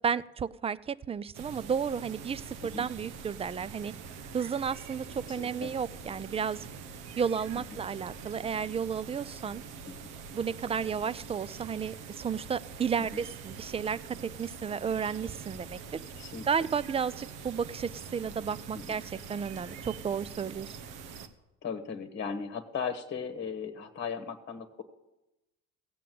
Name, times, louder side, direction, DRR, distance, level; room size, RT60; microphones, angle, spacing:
voice 1, 0.0-3.9 4.3-6.7 7.2-9.6 10.3-16.0 16.5-20.8, right 7 dB, 20° right, 19 dB, 0.4 m, -32 dB
sound 1, 1.3-21.3, right 5 dB, 80° right, 1.2 m, -44 dB
voice 2, 5.3-5.7 7.5-7.8 9.8-10.1 13.0-13.2 16.2-16.5 18.7-19.0 21.6-24.8, left 6 dB, 35° left, 8 dB, 1.3 m, -38 dB
16.5 x 7.6 x 7.6 m, 0.98 s
supercardioid pair, 85°, 35 cm